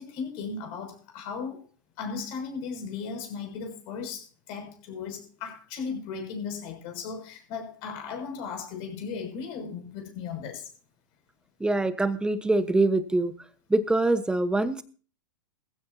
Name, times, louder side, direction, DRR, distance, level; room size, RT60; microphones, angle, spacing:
voice 1, 0.0-1.6 2.0-10.7, left 5 dB, 50° left, 4 dB, 6.5 m, -36 dB
voice 2, 11.6-13.3 13.7-14.8, right 2 dB, 5° right, 12 dB, 1.2 m, -24 dB
19.5 x 15.5 x 2.8 m, 0.39 s
hypercardioid pair, 105°, 11 cm